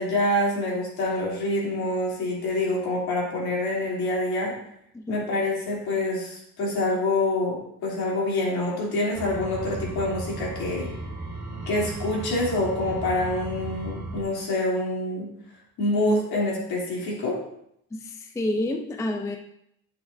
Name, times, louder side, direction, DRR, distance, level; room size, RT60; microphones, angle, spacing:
voice 1, 0.0-4.5 5.1-7.6 7.8-10.9 11.7-15.3 15.8-17.4, left 1 dB, 70° left, -3 dB, 3.0 m, -26 dB
sound 1, 9.1-14.2, right 2 dB, 40° right, 1.9 m, -35 dB
voice 2, 17.9-19.4, left 1 dB, 10° left, 5 dB, 0.4 m, -29 dB
8.3 x 7.9 x 2.6 m, 0.74 s
cardioid pair, 145°, 39 cm